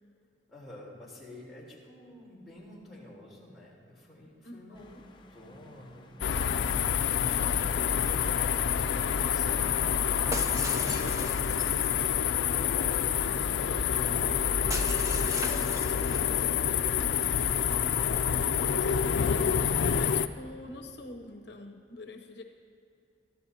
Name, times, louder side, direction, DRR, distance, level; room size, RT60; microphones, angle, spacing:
voice 1, 0.5-4.9 5.3-6.6 6.9-9.8 10.6-15.1 15.4-19.0 20.2-20.6, left 1 dB, ahead, -6 dB, 3.7 m, -50 dB
voice 2, 4.4-5.0 19.0-22.4, left 2 dB, 70° left, 4 dB, 0.9 m, -46 dB
sound 1, 4.8-19.4, left 1 dB, 25° left, 0.8 m, -44 dB
sound 2, 6.2-20.3, left 8 dB, 90° left, 0.4 m, -27 dB
Shatter, 10.3-11.9 14.7-16.5, right 2 dB, 15° right, 0.6 m, -39 dB
24.5 x 13.5 x 2.8 m, 2.6 s
head